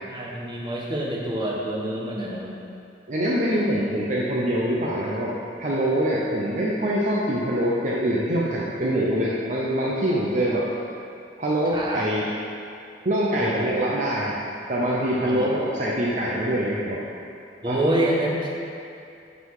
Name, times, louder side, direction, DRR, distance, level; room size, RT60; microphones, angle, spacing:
voice 1, 0.1-2.5 11.7-12.0 13.3-13.7 15.2-15.5 17.6-18.5, right 1 dB, 25° right, -4 dB, 1.2 m, -27 dB
voice 2, 3.1-5.3 5.6-10.7 11.4-12.2 13.0-14.4 14.7-17.0 17.7-17.8, right 1 dB, 45° right, -5 dB, 0.8 m, -24 dB
10.5 x 4.2 x 4.8 m, 2.5 s
head